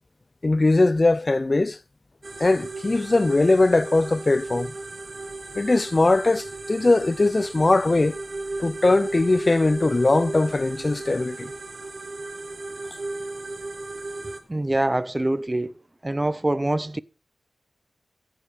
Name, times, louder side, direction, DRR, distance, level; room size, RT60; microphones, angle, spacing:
voice 1, 0.4-1.8 2.4-4.7 5.6-8.2 8.6-11.5, left 2 dB, 35° left, 0.5 m, -20 dB
sound 1, 2.2-14.4, right 2 dB, 50° right, 1.8 m, -35 dB
voice 2, 14.5-15.7 16.0-17.0, right 1 dB, 20° right, 0.6 m, -24 dB
14.5 x 6.5 x 5.8 m
wide cardioid pair, 85°, 0 cm